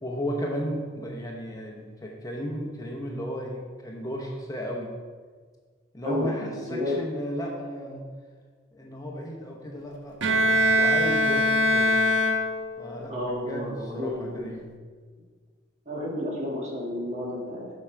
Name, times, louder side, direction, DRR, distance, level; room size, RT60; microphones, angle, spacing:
voice 1, 0.0-4.9 5.9-8.1 8.7-12.0 12.8-14.7, equal, 20° left, -1 dB, 0.9 m, -34 dB
voice 2, 6.0-7.0 13.1-14.5 15.8-17.7, left 1 dB, 35° right, -3 dB, 1.7 m, -31 dB
Bowed string instrument, 10.2-12.9, equal, 75° right, 0.8 m, -22 dB
7.3 x 6.1 x 4.6 m, 1.5 s
head